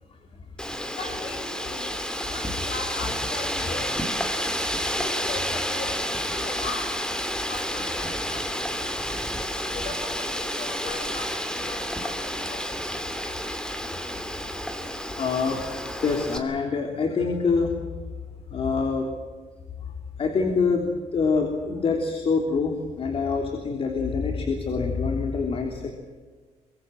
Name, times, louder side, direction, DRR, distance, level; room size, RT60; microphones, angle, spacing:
Wind, 0.6-16.4, equal, 5° left, 2.7 m, -30 dB
voice 1, 0.9-4.3 4.8-7.0 7.5-12.8, left 3 dB, 65° left, 5 dB, 7.8 m, -39 dB
voice 2, 15.2-17.8 18.5-19.1 20.2-25.9, left 4 dB, 50° left, 3 dB, 3.3 m, -26 dB
24.5 x 23.5 x 7.7 m, 1.5 s
cardioid pair, 140°, 12 cm